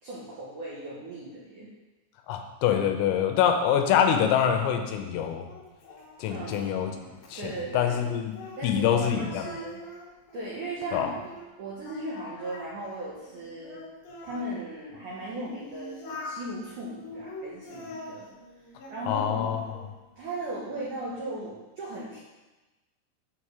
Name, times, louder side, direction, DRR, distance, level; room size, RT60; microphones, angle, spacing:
voice 1, 0.0-1.7 6.3-6.7 7.4-7.9 8.6-9.8 10.3-11.3 11.6-13.8 14.2-18.3 18.9-19.6 20.2-22.2, right 1 dB, 75° right, -6 dB, 1.8 m, -37 dB
voice 2, 2.3-5.5 6.2-6.9 7.3-8.4 8.6-9.4 10.9-11.1 19.1-19.6, left 9 dB, 85° left, 6 dB, 3.4 m, -25 dB
Singing, 4.3-8.8 9.1-11.5 11.8-14.5 15.1-16.4 17.0-19.0 19.4-20.0, left 2 dB, 60° left, 2.7 m, -44 dB
7.8 x 5.8 x 6.5 m, 1.1 s
omnidirectional pair, 5.8 m